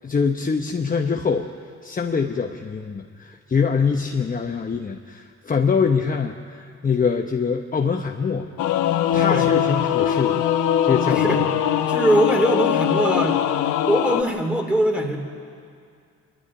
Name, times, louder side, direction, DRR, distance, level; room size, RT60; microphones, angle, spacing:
voice 1, 0.0-1.5 1.8-8.5 9.1-10.5 10.8-11.4 11.8-11.9, left 5 dB, 30° left, 3 dB, 1.0 m, -24 dB
Singing / Musical instrument, 8.6-14.2, left 10 dB, 85° left, 1.0 m, -21 dB
voice 2, 11.9-13.4 13.9-15.2, right 1 dB, 5° right, 3 dB, 3.3 m, -21 dB
25.0 x 12.0 x 9.9 m, 2.3 s
cardioid pair, 90°, 30 cm